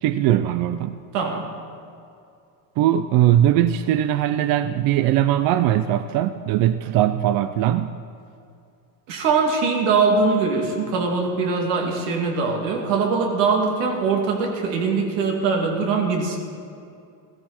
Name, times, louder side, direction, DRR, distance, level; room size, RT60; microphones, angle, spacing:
voice 1, 0.0-1.0 2.8-8.0, right 12 dB, 45° right, 12 dB, 0.5 m, -20 dB
voice 2, 1.1-1.5 9.1-16.4, right 4 dB, 75° right, 1 dB, 2.7 m, -22 dB
15.5 x 15.0 x 4.4 m, 2.5 s
supercardioid pair, 130°, 49 cm